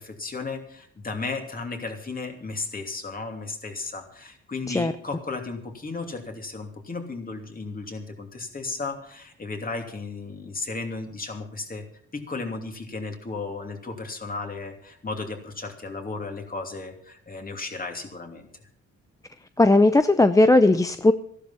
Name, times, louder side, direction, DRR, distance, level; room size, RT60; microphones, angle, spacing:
voice 1, 0.0-11.8 12.1-18.5, left 3 dB, 30° left, 4 dB, 2.8 m, -34 dB
voice 2, 19.6-21.1, left 2 dB, 10° left, 10 dB, 0.5 m, -17 dB
13.5 x 12.0 x 5.8 m, 0.63 s
cardioid pair, 90°, 30 cm